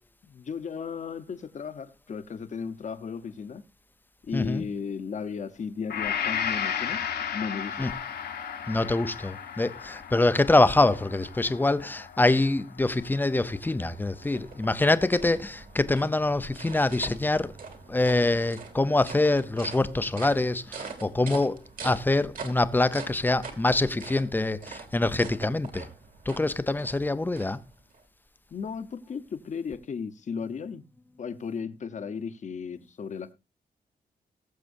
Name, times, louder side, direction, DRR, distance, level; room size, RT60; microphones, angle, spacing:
voice 1, 0.3-3.6 4.2-7.0 7.3-7.9 28.5-30.8 31.2-33.3, left 6 dB, 45° left, 0.9 m, -35 dB
voice 2, 4.3-4.6 7.8-7.9 8.7-17.5 17.9-25.9 26.3-27.6, left 2 dB, 10° left, 0.6 m, -25 dB
Gong, 5.9-13.9, left 8 dB, 75° left, 1.4 m, -34 dB
sound 1, 13.6-28.0, right 4 dB, 55° right, 2.6 m, -44 dB
20.5 x 7.5 x 2.6 m
wide cardioid pair, 155°, 17 cm